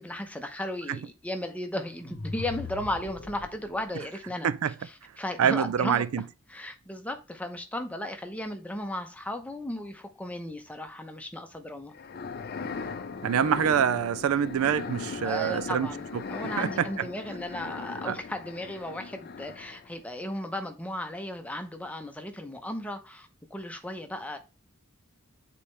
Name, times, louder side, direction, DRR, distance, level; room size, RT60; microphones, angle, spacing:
voice 1, 0.0-11.9 15.2-24.4, left 1 dB, 5° left, 0.7 m, -36 dB
sound 1, 2.0-3.9, left 3 dB, 70° left, 0.9 m, -40 dB
voice 2, 5.4-6.2 13.2-15.9 16.4-16.9 18.1-18.2, right 8 dB, 70° right, 0.4 m, -25 dB
sound 2, 11.9-20.0, left 4 dB, 45° left, 0.5 m, -38 dB
8.2 x 4.2 x 3.3 m
head